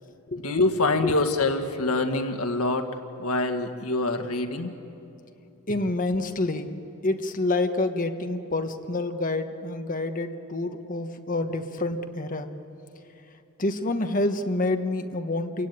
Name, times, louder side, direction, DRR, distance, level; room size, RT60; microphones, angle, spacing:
voice 1, 0.4-2.9 3.2-4.7, left 2 dB, 75° left, 6 dB, 1.8 m, -25 dB
voice 2, 5.7-6.8 7.0-12.5 13.6-15.7, left 2 dB, 35° left, 7 dB, 1.2 m, -27 dB
29.5 x 16.5 x 9.3 m, 2.9 s
head